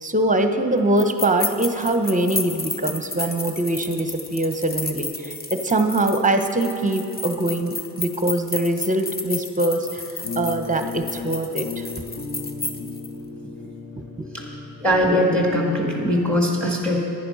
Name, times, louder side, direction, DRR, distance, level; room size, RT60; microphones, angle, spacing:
voice 1, 0.0-11.9 14.2-14.3, right 1 dB, 15° right, 7 dB, 1.0 m, -23 dB
sound 1, 1.0-13.1, left 3 dB, 20° left, 0.8 m, -32 dB
sound 2, 10.2-16.4, left 3 dB, 35° left, 1.1 m, -34 dB
voice 2, 14.8-17.0, equal, ahead, -1 dB, 2.2 m, -21 dB
11.0 x 9.9 x 5.6 m, 2.7 s
supercardioid pair, 50°, 46 cm